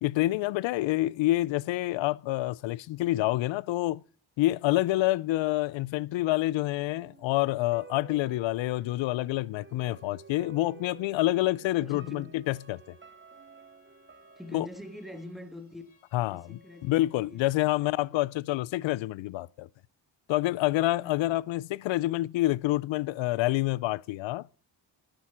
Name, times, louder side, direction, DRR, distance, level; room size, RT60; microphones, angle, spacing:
voice 1, 0.0-4.0 4.4-12.9 14.5-14.7 16.1-19.7 20.3-24.5, left 17 dB, 80° left, 0.5 m, -27 dB
sound 1, 6.9-15.9 16.2-16.3, right 7 dB, 25° right, 0.8 m, -53 dB
voice 2, 11.8-12.4 14.4-15.8 16.3-17.4 17.8-18.2, left 1 dB, ahead, 1.8 m, -44 dB
Bowed string instrument, 12.5-17.6, left 5 dB, 50° left, 3.5 m, -64 dB
11.5 x 9.0 x 5.8 m
cardioid pair, 65°, 45 cm